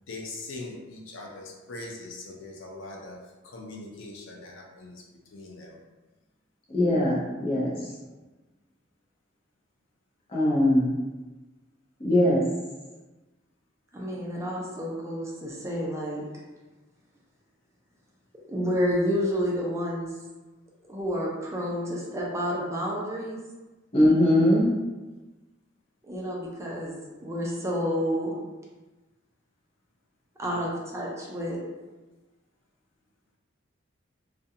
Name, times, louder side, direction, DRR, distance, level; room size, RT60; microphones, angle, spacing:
voice 1, 0.1-3.2 3.4-5.0 5.3-5.8 30.5-30.7, left 2 dB, 80° left, -1 dB, 0.5 m, -41 dB
voice 2, 6.7-7.9 10.3-10.9 12.0-12.4 23.9-24.7, left 1 dB, 30° left, -6 dB, 0.7 m, -21 dB
voice 3, 13.9-16.3 18.5-20.1 20.9-23.4 26.0-26.9 27.2-28.3 30.4-31.6, equal, 15° right, -4 dB, 0.4 m, -29 dB
2.4 x 2.2 x 2.7 m, 1.2 s
head